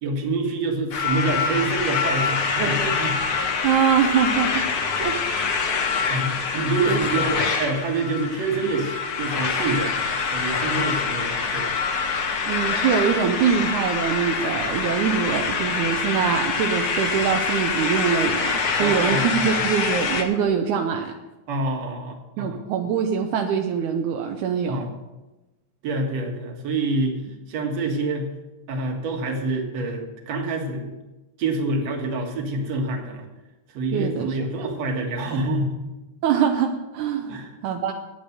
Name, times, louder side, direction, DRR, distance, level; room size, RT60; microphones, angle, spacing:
voice 1, 0.0-3.2 5.7-10.0 10.3-11.8 18.8-19.6 21.5-22.6 24.7-24.9 25.8-27.1 27.5-28.3 28.7-30.9 31.4-33.3 33.7-35.8 37.3-37.5, right 2 dB, 60° right, 2 dB, 2.7 m, -27 dB
sound 1, 0.9-20.2, left 5 dB, 70° left, 0.9 m, -25 dB
voice 2, 3.6-4.6 5.0-5.2 6.9-7.0 12.5-21.1 22.4-24.9 33.9-34.4 36.2-37.4 37.6-37.9, right 7 dB, 80° right, 3 dB, 2.2 m, -23 dB
11.0 x 8.8 x 6.6 m, 1.1 s
omnidirectional pair, 3.6 m